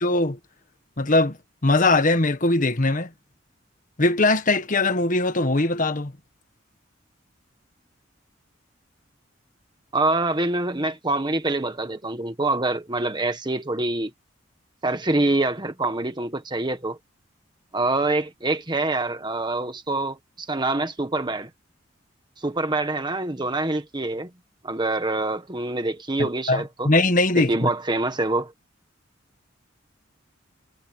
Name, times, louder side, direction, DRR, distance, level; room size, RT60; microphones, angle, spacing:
voice 1, 0.0-0.4 1.0-1.4 1.6-3.1 4.0-6.1 26.2-27.7, left 2 dB, 40° left, 1.5 m, -21 dB
voice 2, 9.9-14.1 14.8-17.0 17.7-21.5 22.4-24.3 24.6-26.9 27.4-28.5, right 2 dB, 25° right, 1.3 m, -25 dB
head